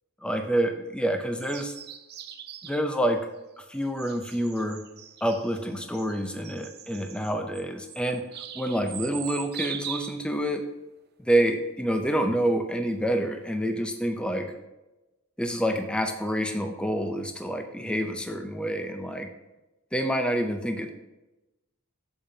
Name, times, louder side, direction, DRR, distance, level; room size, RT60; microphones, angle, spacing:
voice 1, 0.2-1.7 2.6-3.2 3.6-4.8 5.2-8.2 8.5-10.6 11.2-14.5 15.4-19.3 19.9-20.9, right 1 dB, 5° left, 5 dB, 0.4 m, -27 dB
sound 1, 1.4-2.9 3.8-10.3, right 9 dB, 50° right, 0.5 m, -41 dB
8.6 x 7.0 x 2.7 m, 1.0 s
head